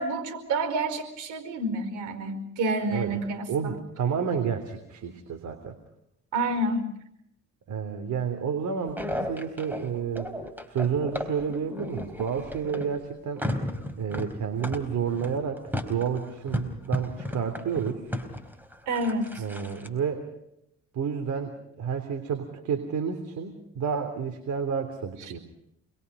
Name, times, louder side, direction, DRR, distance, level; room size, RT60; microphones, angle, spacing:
voice 1, 0.0-3.8 6.3-6.9 18.9-19.4, right 2 dB, 90° right, 9 dB, 5.0 m, -29 dB
voice 2, 2.9-3.2 3.5-5.8 7.7-10.3 10.7-13.4 14.0-18.0 19.4-20.3 20.9-25.4, right 7 dB, 75° right, 6 dB, 3.3 m, -30 dB
sound 1, 8.9-13.0 13.3-19.9, left 1 dB, 5° right, 4.1 m, -34 dB
28.5 x 22.0 x 5.4 m, 0.77 s
cardioid pair, 90°, 30 cm